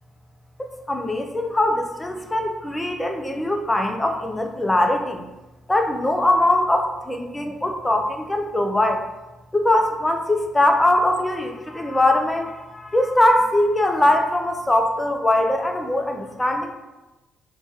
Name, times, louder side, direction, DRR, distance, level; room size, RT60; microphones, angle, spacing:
voice 1, 0.6-5.2 5.7-9.0 9.5-16.7, left 1 dB, 15° left, 4 dB, 0.5 m, -21 dB
3.1 x 2.3 x 4.2 m, 1.1 s
cardioid pair, 90°, 0 cm